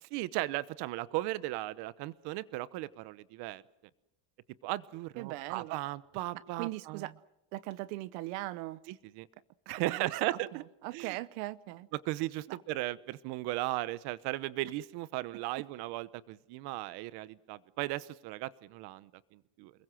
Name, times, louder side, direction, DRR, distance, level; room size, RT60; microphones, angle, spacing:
voice 1, 0.1-3.6 4.6-7.1 8.9-9.3 9.7-10.6 10.9-11.2 11.9-19.7, right 17 dB, 60° right, 17 dB, 1.1 m, -36 dB
voice 2, 5.2-5.8 6.6-7.1 7.5-8.8 9.9-10.4 10.8-11.9 12.5-12.6, right 18 dB, 90° right, 16 dB, 0.9 m, -39 dB
29.5 x 21.5 x 6.3 m, 0.87 s
cardioid pair, 175°, 44 cm